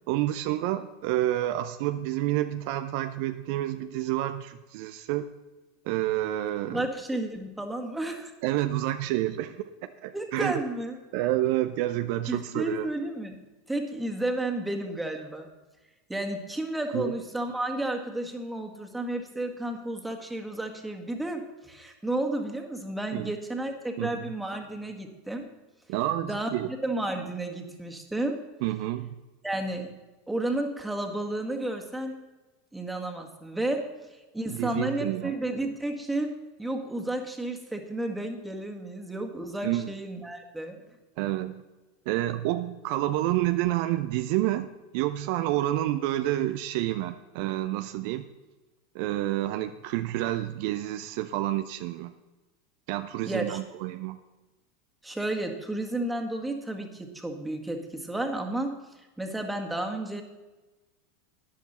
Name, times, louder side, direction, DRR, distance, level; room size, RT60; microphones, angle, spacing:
voice 1, 0.1-5.3 5.9-6.8 8.4-10.6 11.1-12.9 16.9-17.1 23.1-23.3 24.0-24.2 25.9-26.7 28.6-29.1 34.5-35.3 39.6-39.9 41.2-41.6 42.1-48.3 48.9-52.1 52.9-54.2, right 14 dB, 55° right, 10 dB, 0.5 m, -29 dB
voice 2, 6.7-8.3 10.1-11.0 12.3-13.4 13.7-15.5 16.1-25.5 26.2-26.5 26.8-28.4 29.4-30.0 30.3-32.2 32.7-36.3 36.6-40.8 53.3-53.6 55.0-58.8 59.2-60.2, right 1 dB, 5° right, 3 dB, 1.8 m, -32 dB
12.5 x 10.5 x 4.3 m, 1.1 s
figure-of-eight pair, 85°, 0 cm